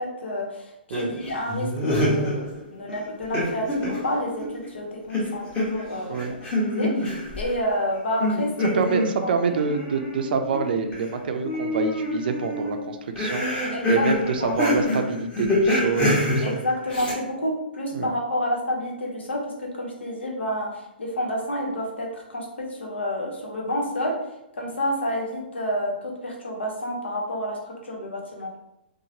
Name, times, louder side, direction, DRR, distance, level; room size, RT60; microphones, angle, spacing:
voice 1, 0.0-6.3 6.6-8.8 9.2-9.3 13.7-14.1 14.4-14.6 16.4-24.2 24.6-28.6, equal, 80° left, -1 dB, 0.9 m, -29 dB
sound 1, 0.9-2.6 2.9-4.7 5.1-7.5 8.2-11.1 11.4-17.1, left 1 dB, 15° left, 0.9 m, -26 dB
voice 2, 8.6-16.5 17.9-18.1, right 5 dB, 60° right, 6 dB, 0.4 m, -26 dB
2.8 x 2.0 x 2.8 m, 0.88 s
hypercardioid pair, 135°, 6 cm